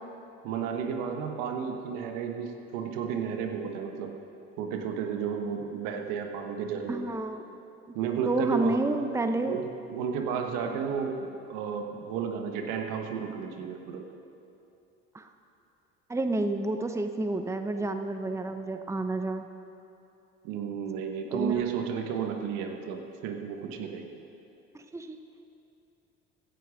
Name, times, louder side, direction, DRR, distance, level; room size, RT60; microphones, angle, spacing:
voice 1, 0.4-4.1 4.6-7.0 7.9-8.8 9.4-14.1 20.4-24.2, right 7 dB, 75° right, 4 dB, 1.5 m, -32 dB
voice 2, 6.9-7.4 7.9-8.0 8.2-9.6 10.6-10.7 15.1-15.3 16.1-19.5 21.2-21.7 24.7-25.2, right 2 dB, 10° right, 7 dB, 0.8 m, -30 dB
16.0 x 10.5 x 5.1 m, 2.8 s
supercardioid pair, 75°, 32 cm